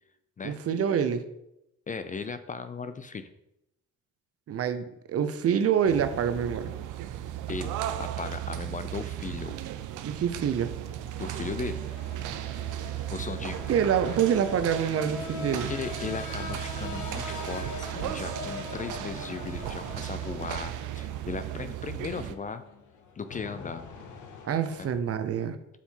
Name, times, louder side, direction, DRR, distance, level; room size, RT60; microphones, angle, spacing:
voice 1, 0.4-1.2 4.5-6.7 10.0-10.7 13.7-15.7 24.4-25.6, right 8 dB, 50° right, 10 dB, 0.7 m, -26 dB
voice 2, 1.9-3.3 7.5-9.6 11.2-11.8 13.1-13.7 15.5-22.6 23.2-23.9 24.8-24.9, left 5 dB, 25° left, 11 dB, 0.4 m, -37 dB
sound 1, 5.2-25.0, left 4 dB, 80° left, 1.0 m, -44 dB
sound 2, 5.8-22.4, right 12 dB, 85° right, 0.5 m, -36 dB
5.7 x 4.2 x 4.4 m, 0.83 s
cardioid pair, 90°, 30 cm